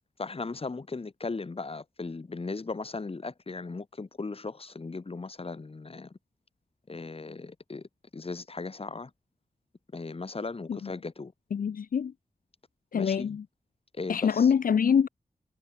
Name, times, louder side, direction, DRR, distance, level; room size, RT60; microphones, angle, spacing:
voice 1, 0.2-6.2 6.9-9.1 9.9-11.3 12.9-13.4 13.9-14.5, left 3 dB, 40° left, 1.6 m, -37 dB
voice 2, 11.5-12.1 12.9-13.4 14.1-15.1, left 7 dB, 75° left, 0.6 m, -25 dB
wide cardioid pair, 75°, 14 cm